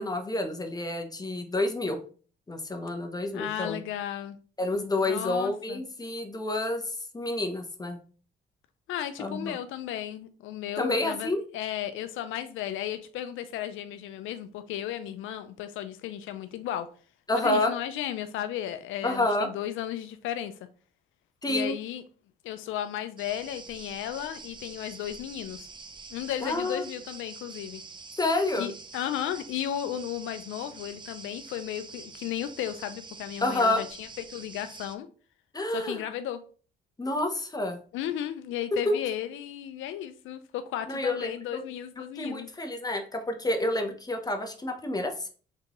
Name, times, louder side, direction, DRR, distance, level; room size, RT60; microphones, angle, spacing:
voice 1, 0.0-2.0 2.5-3.8 4.6-6.8 7.1-8.0 9.2-9.6 10.8-11.4 17.3-17.7 19.0-19.5 21.4-21.8 26.4-26.8 28.2-28.7 33.4-33.8 35.5-36.0 37.0-37.8 40.9-41.6 42.2-45.3, left 2 dB, 20° left, 0.8 m, -29 dB
voice 2, 3.3-4.4 5.0-5.8 8.9-16.9 17.4-20.5 21.5-22.0 22.4-25.7 26.1-27.8 28.5-35.1 35.7-36.4 37.9-42.5, left 11 dB, 85° left, 0.4 m, -34 dB
sound 1, 23.2-34.9, right 4 dB, 25° right, 0.5 m, -46 dB
3.7 x 3.7 x 3.0 m
cardioid pair, 90°, 20 cm